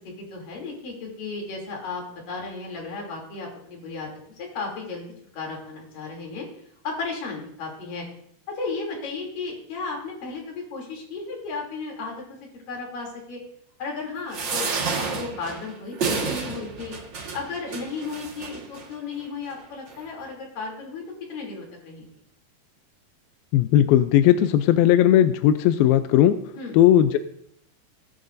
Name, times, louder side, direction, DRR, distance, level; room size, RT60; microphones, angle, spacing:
voice 1, 0.2-5.1 5.3-6.4 6.8-8.0 8.5-12.2 12.7-13.4 13.8-16.9 17.3-21.0 21.3-22.0 26.6-26.8, left 4 dB, 55° left, -1 dB, 4.6 m, -34 dB
sound 1, 14.3-18.9 19.5-19.6 19.9-20.0, right 4 dB, 60° right, 1.2 m, -30 dB
voice 2, 23.5-26.4 26.7-27.2, left 11 dB, 80° left, 10 dB, 2.2 m, -17 dB
19.0 x 10.5 x 2.6 m, 0.68 s
omnidirectional pair, 4.7 m